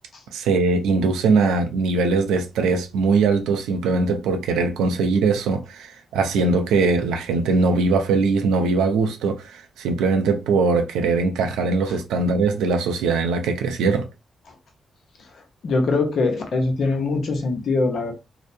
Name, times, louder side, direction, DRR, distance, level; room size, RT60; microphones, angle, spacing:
voice 1, 0.3-14.1, right 4 dB, 80° right, 0.4 m, -21 dB
voice 2, 15.6-18.1, left 3 dB, 65° left, 0.7 m, -22 dB
2.7 x 2.0 x 2.4 m
hypercardioid pair, 40°, 0 cm